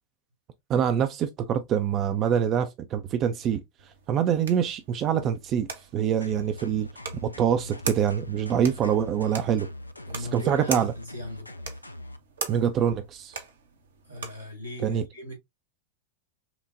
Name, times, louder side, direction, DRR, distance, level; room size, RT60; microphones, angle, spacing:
voice 1, 0.7-3.6 4.1-6.9 7.2-9.7 10.1-10.9 12.5-13.4 14.8-15.0, right 8 dB, 35° right, 0.4 m, -25 dB
sound 1, 3.8-14.5, right 5 dB, 70° right, 0.8 m, -41 dB
sound 2, 6.2-12.2, left 1 dB, 85° left, 0.4 m, -42 dB
voice 2, 10.0-11.5 14.0-15.3, left 1 dB, 85° right, 2.2 m, -38 dB
5.7 x 2.2 x 2.4 m
figure-of-eight pair, 90°, 0 cm